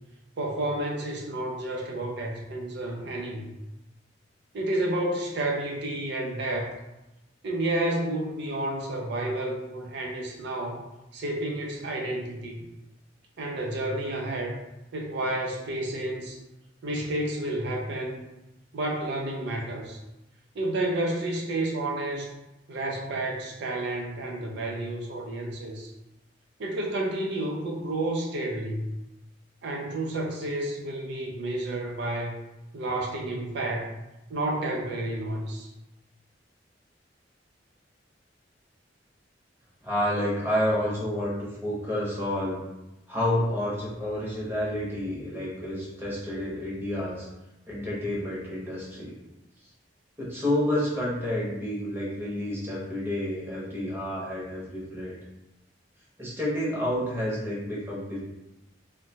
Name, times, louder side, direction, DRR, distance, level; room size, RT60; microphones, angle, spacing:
voice 1, 0.4-3.5 4.5-6.7 7.4-10.8 11.1-12.6 13.4-14.6 14.9-16.4 16.8-18.2 18.7-20.0 20.6-22.3 22.7-25.9 26.6-28.9 29.6-32.4 32.7-33.9 34.3-35.7, right 1 dB, 65° right, 0 dB, 0.4 m, -30 dB
voice 2, 39.8-42.6 43.1-47.3 47.7-49.2 50.2-55.1 56.2-58.2, left 1 dB, 10° right, -6 dB, 0.8 m, -29 dB
2.6 x 2.1 x 2.8 m, 0.96 s
head